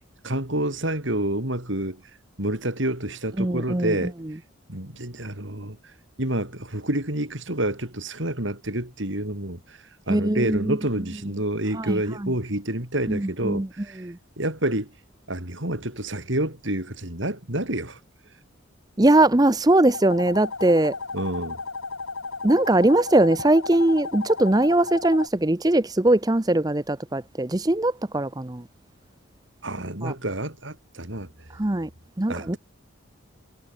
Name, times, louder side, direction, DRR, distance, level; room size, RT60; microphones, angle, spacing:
voice 1, 0.2-2.0 2.4-4.1 4.7-5.8 6.2-9.8 10.1-14.0 14.4-14.9 15.3-18.0 21.1-21.6 29.6-31.3 32.3-32.6, right 1 dB, 65° right, 5.1 m, -28 dB
voice 2, 3.4-3.9 10.1-10.8 11.7-12.3 13.1-13.7 14.0-14.2 19.0-20.9 22.4-28.6 30.0-30.1 31.5-31.9 32.2-32.6, right 1 dB, 20° right, 0.7 m, -21 dB
sound 1, 19.9-25.3, left 4 dB, 85° left, 4.4 m, -34 dB
head